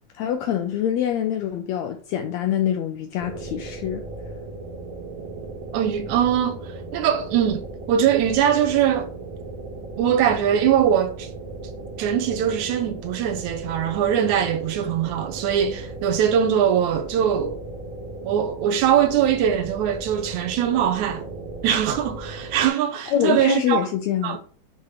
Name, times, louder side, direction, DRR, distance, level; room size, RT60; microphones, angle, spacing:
voice 1, 0.2-4.0 23.1-24.4, left 10 dB, 80° left, 1.6 m, -25 dB
sound 1, 3.2-22.7, right 3 dB, 60° right, 2.5 m, -36 dB
voice 2, 5.7-6.6 6.9-7.6 7.9-9.1 10.0-11.3 12.0-17.6 18.2-21.3 21.6-23.8 24.2-24.4, right 9 dB, 75° right, 2.1 m, -21 dB
7.7 x 3.0 x 4.9 m
omnidirectional pair, 3.7 m